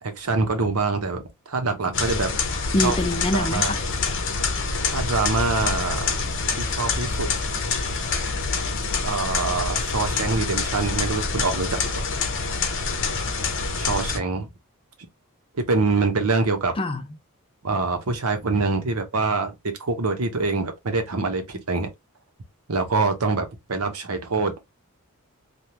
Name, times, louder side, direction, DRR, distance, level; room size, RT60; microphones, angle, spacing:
voice 1, 0.0-2.3 2.8-3.0 3.3-3.7 4.9-6.2 6.6-7.3 9.0-12.1 13.8-14.5 15.5-16.8 17.6-21.9 22.7-24.5, right 3 dB, 75° right, 0.9 m, -25 dB
sound 1, 1.9-14.2, left 4 dB, 55° left, 0.7 m, -26 dB
voice 2, 2.7-3.8 16.8-17.0, left 1 dB, 25° left, 0.4 m, -24 dB
3.4 x 2.3 x 2.8 m
head